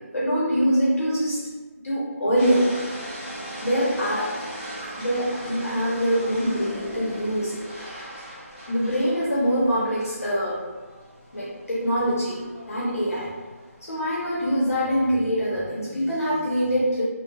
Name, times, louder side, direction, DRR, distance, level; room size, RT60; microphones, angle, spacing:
voice 1, 0.1-1.4 1.8-2.8 3.6-4.4 5.0-7.5 8.7-10.6 11.3-12.4 12.7-13.3 13.9-17.0, equal, 65° left, -7 dB, 0.9 m, -24 dB
sound 1, 2.4-15.1, equal, 15° right, 0.8 m, -39 dB
3.7 x 2.1 x 2.4 m, 1.3 s
figure-of-eight pair, 180°, 8 cm